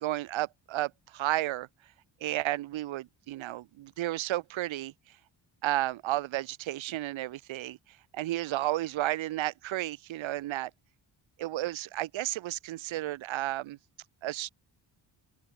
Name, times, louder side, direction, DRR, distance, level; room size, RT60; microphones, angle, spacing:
voice 1, 0.0-1.7 2.2-4.9 5.6-7.8 8.1-10.7 11.4-13.8 14.2-14.5, right 15 dB, 85° right, 0.8 m, -32 dB
open air
wide cardioid pair, 135°, 46 cm